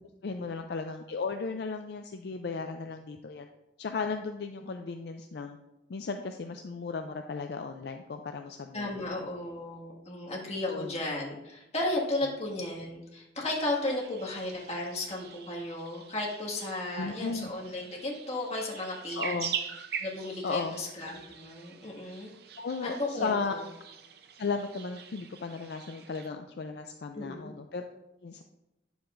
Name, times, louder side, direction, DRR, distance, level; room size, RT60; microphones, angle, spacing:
voice 1, 0.0-3.5 3.8-5.6 5.9-9.3 10.7-11.0 16.9-17.5 19.2-19.5 20.4-20.8 22.6-23.5 24.4-27.9 28.2-28.4, left 4 dB, 60° left, 5 dB, 0.4 m, -35 dB
voice 2, 8.7-19.5 20.0-22.3 22.8-23.6 27.1-27.5, left 2 dB, 35° left, -4 dB, 1.8 m, -34 dB
sound 1, 13.6-26.3, right 7 dB, 55° right, 0.6 m, -43 dB
9.6 x 7.0 x 2.5 m, 0.95 s
head